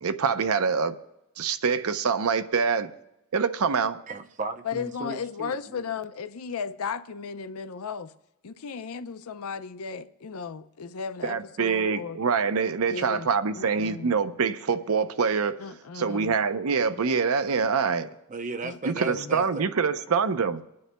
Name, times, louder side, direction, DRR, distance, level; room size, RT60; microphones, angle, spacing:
voice 1, 0.0-0.9 1.4-2.9 3.3-4.0 11.2-15.6 15.9-18.1 18.8-20.6, right 5 dB, 75° right, 0.6 m, -25 dB
voice 2, 4.1-5.9 18.3-19.6, right 3 dB, 35° right, 0.6 m, -36 dB
voice 3, 4.6-8.1 8.4-12.2 12.9-13.3 13.6-14.1 15.6-16.3 18.6-19.4, left 6 dB, 75° left, 0.5 m, -35 dB
25.5 x 9.5 x 2.2 m
head